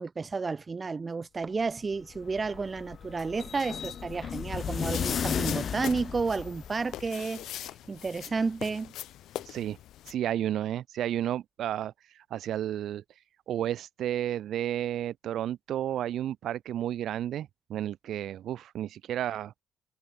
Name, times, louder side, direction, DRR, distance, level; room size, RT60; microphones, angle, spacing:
voice 1, 0.0-8.9, right 4 dB, 30° right, 2.1 m, -32 dB
sound 1, 1.9-7.0, left 7 dB, 55° left, 0.5 m, -34 dB
sound 2, 4.6-10.1, left 13 dB, 80° left, 0.7 m, -42 dB
voice 2, 9.5-9.8 10.1-13.0 13.5-19.5, right 11 dB, 75° right, 0.5 m, -32 dB
cardioid pair, 90°, 0 cm